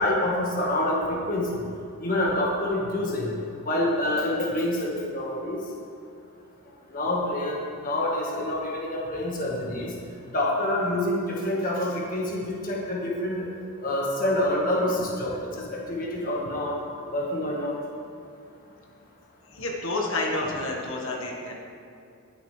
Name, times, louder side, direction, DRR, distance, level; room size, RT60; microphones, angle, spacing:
voice 1, 0.0-1.6 2.0-3.3 3.6-5.6 6.9-10.0 10.3-13.4 13.8-15.4 15.7-16.8 17.1-17.8, left 1 dB, 40° left, -3 dB, 1.6 m, -27 dB
voice 2, 19.5-21.5, left 2 dB, 60° left, -2 dB, 1.5 m, -29 dB
19.0 x 8.0 x 3.3 m, 2.5 s
head